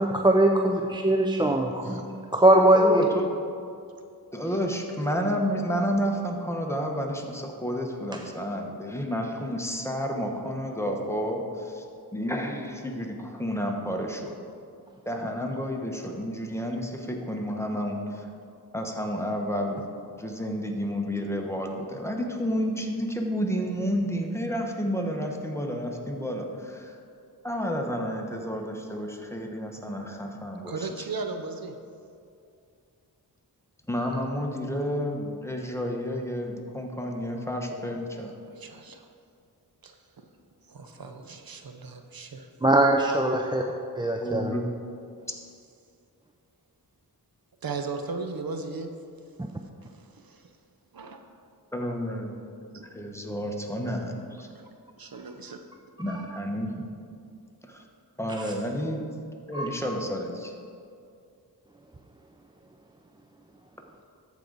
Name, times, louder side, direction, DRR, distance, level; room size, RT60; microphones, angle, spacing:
voice 1, 0.0-2.0 2.3-3.0 42.6-43.6 44.0-44.5 58.4-58.5 59.5-59.8, right 1 dB, 10° right, 2 dB, 0.4 m, -21 dB
voice 2, 1.7-2.1 30.7-31.8 38.2-39.1 39.8-40.2 40.7-42.5 47.6-48.9 49.8-50.5 50.9-51.2 52.7-52.8 54.5-54.7 55.0-55.6, right 4 dB, 60° right, 5 dB, 0.7 m, -37 dB
voice 3, 2.7-3.3 4.3-11.8 12.1-14.3 15.1-18.3 18.7-27.0 27.4-30.9 33.9-38.3 44.2-44.6 51.7-52.3 52.6-54.5 56.0-56.9 57.7-57.8 58.2-59.2 59.5-60.5, equal, 5° left, 1 dB, 1.0 m, -30 dB
13.5 x 4.7 x 3.9 m, 2.4 s
wide cardioid pair, 60°, 40 cm